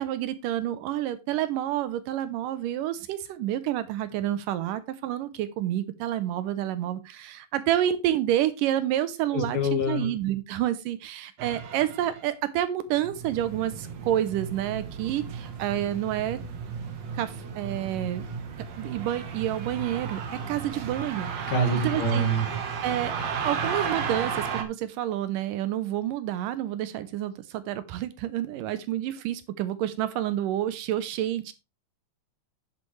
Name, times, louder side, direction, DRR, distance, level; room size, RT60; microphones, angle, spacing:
voice 1, 0.0-16.4 17.1-18.3 18.8-21.5 21.8-22.3 22.8-23.1 23.4-31.5, right 12 dB, 80° right, 13 dB, 2.3 m, -29 dB
voice 2, 9.3-10.1 21.5-22.4, right 1 dB, 40° left, 2 dB, 3.2 m, -25 dB
sound 1, 11.4-12.2 13.0-24.6, right 6 dB, 60° right, 2.2 m, -34 dB
9.7 x 8.1 x 3.2 m, 0.26 s
omnidirectional pair, 3.9 m